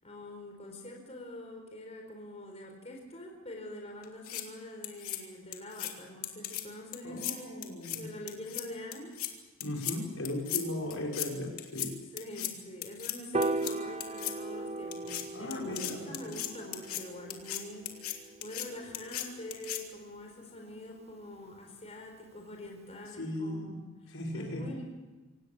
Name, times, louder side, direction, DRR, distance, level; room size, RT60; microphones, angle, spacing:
voice 1, 0.0-9.2 10.8-10.9 12.1-24.8, left 1 dB, 30° left, 1 dB, 4.6 m, -45 dB
sound 1, 4.0-4.4 4.8-5.2 5.5-5.9 6.2-6.6 6.9-7.3 7.6-8.0 8.3-8.6 8.9-9.3 9.6-9.9 10.2-10.6 10.9-11.3 11.6-11.9 12.2-12.5 12.8-13.1 13.4-13.7 14.0-14.3 14.9-15.2 15.5-17.0 17.3-17.6 17.9-18.1 18.4-18.7 18.9-19.2 19.5-19.8, left 13 dB, 85° left, 3.0 m, -36 dB
voice 2, 7.0-8.1 9.6-11.9 15.3-16.3 23.2-24.8, left 1 dB, 65° left, 0 dB, 5.7 m, -37 dB
Piano, 13.3-19.7, right 2 dB, 30° right, 0.7 m, -38 dB
26.5 x 18.5 x 7.4 m, 1.2 s
head